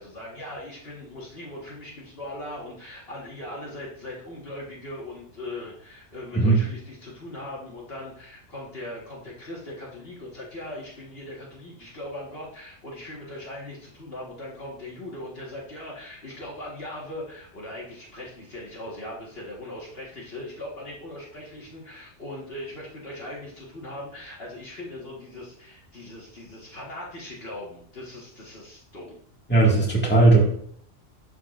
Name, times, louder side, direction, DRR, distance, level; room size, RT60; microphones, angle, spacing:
voice 1, 0.0-29.2, left 1 dB, 50° left, -4 dB, 1.8 m, -39 dB
voice 2, 29.5-30.4, right 2 dB, 10° left, -3 dB, 1.8 m, -17 dB
11.5 x 4.7 x 2.5 m, 0.62 s
omnidirectional pair, 1.3 m